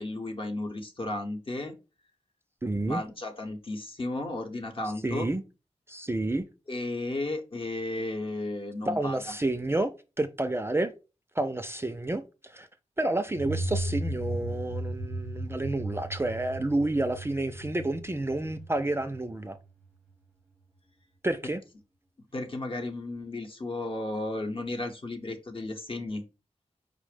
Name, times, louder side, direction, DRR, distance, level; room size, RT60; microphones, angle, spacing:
voice 1, 0.0-1.7 2.9-5.3 6.7-9.2 22.3-26.2, left 2 dB, 45° left, 0.9 m, -34 dB
voice 2, 2.6-3.0 4.8-5.4 5.9-6.4 8.9-9.9 10.2-10.9 11.4-12.7 13.0-19.6 21.2-21.6, right 2 dB, 20° right, 0.4 m, -30 dB
sound 1, 13.3-19.8, right 1 dB, 5° left, 0.8 m, -36 dB
5.1 x 2.0 x 4.8 m
wide cardioid pair, 100°, 12 cm